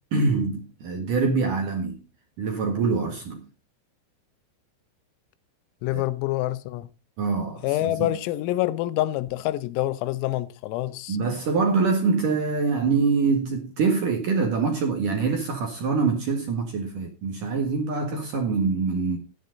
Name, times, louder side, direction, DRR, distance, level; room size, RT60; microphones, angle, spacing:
voice 1, 0.1-2.0 2.4-3.4 5.9-6.0 7.2-8.1 11.1-19.2, right 4 dB, 60° right, 2.4 m, -24 dB
voice 2, 5.8-6.9 7.6-11.2, left 16 dB, 85° left, 3.4 m, -26 dB
13.0 x 10.0 x 3.9 m
omnidirectional pair, 5.9 m